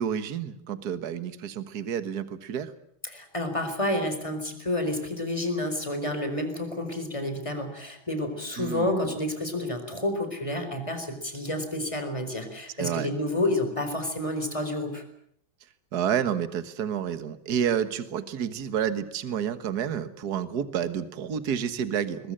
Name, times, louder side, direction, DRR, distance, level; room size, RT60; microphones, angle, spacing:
voice 1, 0.0-2.7 8.6-9.1 12.8-13.1 15.9-22.3, right 8 dB, 55° right, 12 dB, 1.9 m, -29 dB
voice 2, 3.0-15.0, left 1 dB, 15° left, 6 dB, 4.5 m, -29 dB
22.0 x 21.5 x 8.9 m, 0.68 s
omnidirectional pair, 2.2 m